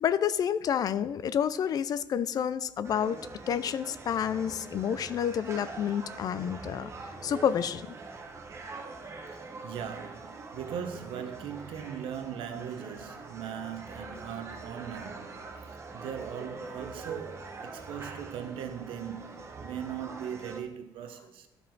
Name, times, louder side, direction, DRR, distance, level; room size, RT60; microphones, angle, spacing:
voice 1, 0.0-3.2 3.5-6.9 7.2-7.9, left 8 dB, 45° left, 0.4 m, -29 dB
sound 1, 2.8-20.6, right 3 dB, 30° right, 1.0 m, -44 dB
voice 2, 9.3-21.5, right 8 dB, 70° right, 0.9 m, -39 dB
12.0 x 4.9 x 3.8 m
cardioid pair, 145°, 9 cm